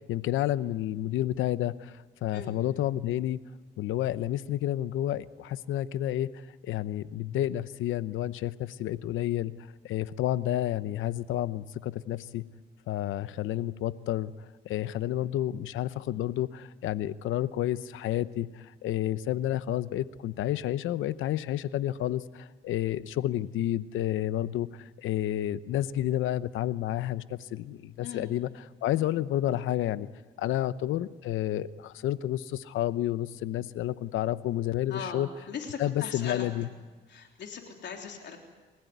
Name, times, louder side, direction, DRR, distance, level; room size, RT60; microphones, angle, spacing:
voice 1, 0.0-3.4 3.8-9.5 9.8-12.4 12.9-30.1 30.4-35.3 35.8-36.7, left 13 dB, 85° left, 15 dB, 0.8 m, -30 dB
voice 2, 34.9-36.5 37.1-38.4, left 6 dB, 65° left, 2 dB, 3.5 m, -39 dB
28.5 x 15.5 x 9.4 m, 1.4 s
cardioid pair, 90°, 20 cm